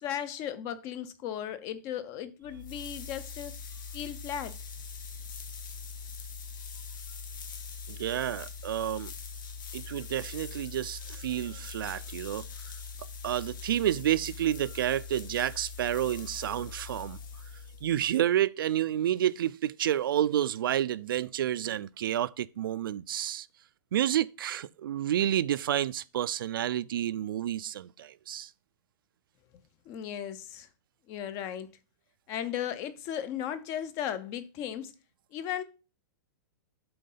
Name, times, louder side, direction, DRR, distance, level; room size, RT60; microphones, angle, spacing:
voice 1, 0.0-3.6 3.9-4.5 29.9-30.7 31.1-31.7 32.3-34.9 35.3-35.6, left 10 dB, 25° left, 0.5 m, -36 dB
sound 1, 2.4-18.2, left 5 dB, 70° left, 1.5 m, -42 dB
voice 2, 7.9-9.1 9.7-12.5 13.2-17.2 17.8-23.5 23.9-28.5, right 11 dB, 90° right, 0.4 m, -30 dB
7.8 x 3.8 x 5.4 m
supercardioid pair, 165°, 11 cm